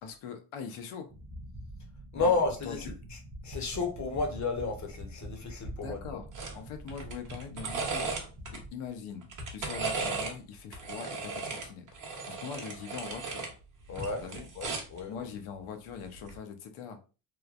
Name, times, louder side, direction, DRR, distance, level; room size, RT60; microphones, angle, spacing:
voice 1, 0.0-1.1 2.2-2.3 2.6-2.9 5.8-6.3 6.5-8.1 8.5-11.9 12.3-13.4 14.2-14.5 15.1-17.0, left 6 dB, 80° left, 0.8 m, -42 dB
sound 1, 1.1-8.7, right 1 dB, 15° right, 0.5 m, -45 dB
voice 2, 2.1-2.9 3.4-6.2 13.9-14.2 14.5-15.2, left 3 dB, 35° left, 0.7 m, -32 dB
sound 2, 6.3-6.6 6.9-8.6 9.2-10.4 10.7-13.5 13.9-15.0 16.2-16.4, right 4 dB, 40° right, 0.8 m, -36 dB
3.1 x 2.1 x 2.4 m
cardioid pair, 125°, 49 cm